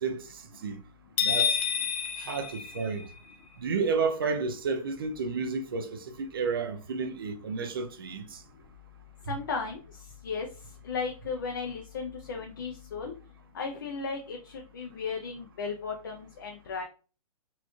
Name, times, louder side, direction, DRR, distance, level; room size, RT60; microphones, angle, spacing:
voice 1, 0.0-0.8 1.2-1.6 2.2-3.1 3.6-8.4 9.3-9.4, right 4 dB, 35° right, 0.4 m, -31 dB
sound 1, 1.2-3.4, left 7 dB, 65° left, 0.8 m, -29 dB
voice 2, 9.3-10.5 10.8-13.1 13.5-16.8, left 5 dB, 35° left, 0.4 m, -35 dB
4.2 x 2.3 x 2.9 m
hypercardioid pair, 180°, 20 cm